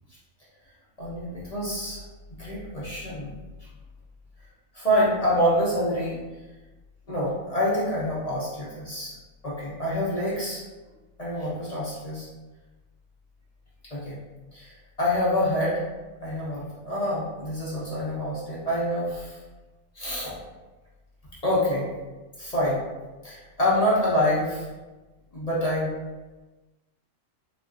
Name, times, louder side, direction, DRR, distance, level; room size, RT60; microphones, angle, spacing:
voice 1, 1.0-2.0 2.4-3.3 4.7-6.2 7.1-9.1 9.4-10.6 11.2-12.3 13.9-14.2 14.5-14.7 15.0-15.8 16.2-19.4 19.9-20.3 21.4-21.8 22.4-22.8 23.2-24.6 25.3-25.9, left 1 dB, 40° left, -8 dB, 0.6 m, -26 dB
3.9 x 2.1 x 2.4 m, 1.2 s
omnidirectional pair, 1.3 m